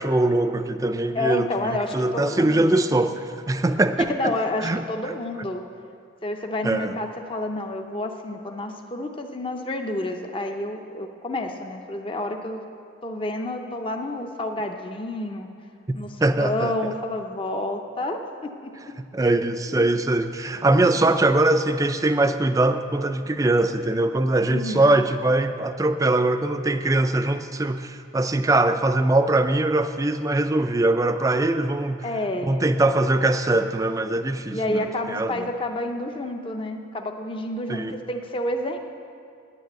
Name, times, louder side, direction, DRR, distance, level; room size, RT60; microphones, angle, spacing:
voice 1, 0.0-1.5 1.9-4.3 4.6-4.8 6.6-6.9 16.2-16.7 19.1-32.0 32.5-35.5 37.7-38.0, right 2 dB, 15° right, 9 dB, 0.4 m, -22 dB
voice 2, 1.1-2.8 4.1-5.6 6.2-12.6 13.0-15.5 15.9-18.7 19.7-19.9 20.7-21.2 24.5-25.0 32.0-32.6 34.5-38.8, left 1 dB, 25° left, 4 dB, 0.6 m, -29 dB
9.6 x 9.1 x 8.0 m, 2.4 s
head